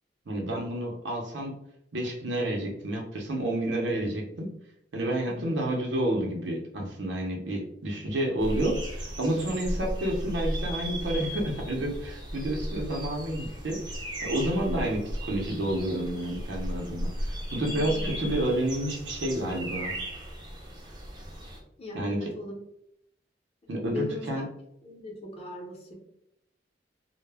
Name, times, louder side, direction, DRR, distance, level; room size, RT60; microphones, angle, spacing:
voice 1, 0.3-1.5 1.9-4.5 4.9-13.8 14.2-19.9 21.9-22.3 23.7-24.4, right 1 dB, 85° right, 0 dB, 0.6 m, -30 dB
sound 1, 8.4-21.6, equal, 25° right, 0.5 m, -35 dB
voice 2, 17.7-18.5 21.8-22.6 23.9-24.2 24.8-25.9, left 2 dB, 35° left, -2 dB, 0.7 m, -38 dB
2.1 x 2.0 x 3.3 m, 0.76 s
head